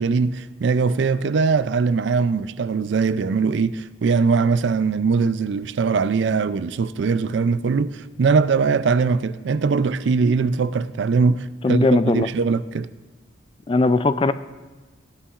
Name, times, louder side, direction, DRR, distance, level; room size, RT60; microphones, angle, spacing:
voice 1, 0.0-12.9, right 5 dB, 65° right, 0.4 m, -21 dB
voice 2, 11.6-12.3 13.7-14.3, left 3 dB, 25° left, 0.3 m, -18 dB
15.5 x 9.8 x 2.4 m
head